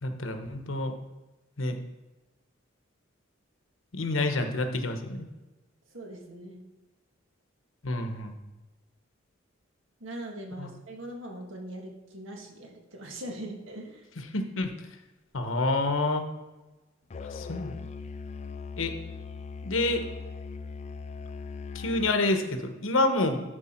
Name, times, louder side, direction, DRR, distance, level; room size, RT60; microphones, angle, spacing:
voice 1, 0.0-0.9 1.6-1.8 3.9-5.3 7.8-8.3 10.6-10.7 14.3-14.7 15.3-16.2 17.3-17.7 18.8-18.9 19.6-20.0 21.7-23.4, left 2 dB, 90° left, 6 dB, 1.1 m, -28 dB
voice 2, 5.9-6.6 10.0-14.1, right 1 dB, 80° right, 1 dB, 1.8 m, -41 dB
Musical instrument, 17.1-22.2, left 5 dB, 35° left, 0.4 m, -39 dB
12.5 x 4.9 x 4.5 m, 1.1 s
head